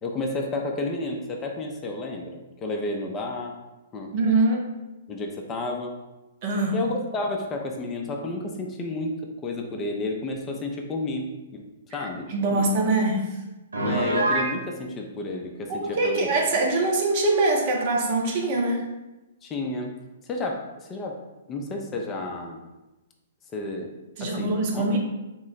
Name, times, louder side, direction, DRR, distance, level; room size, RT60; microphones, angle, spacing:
voice 1, 0.0-3.6 3.9-4.1 5.1-5.9 6.7-11.7 11.9-12.7 13.8-16.7 19.4-20.0 20.3-21.2 21.5-22.6 23.5-23.9 24.2-24.9, left 2 dB, 25° left, 2 dB, 0.5 m, -31 dB
voice 2, 4.1-4.7 6.4-6.7 12.3-13.3 15.7-18.8 24.2-25.0, right 2 dB, 45° right, 1 dB, 0.7 m, -23 dB
Piano, 13.7-14.5, right 1 dB, 80° right, 0.7 m, -24 dB
3.7 x 2.0 x 3.9 m, 1.0 s
figure-of-eight pair, 120°, 0 cm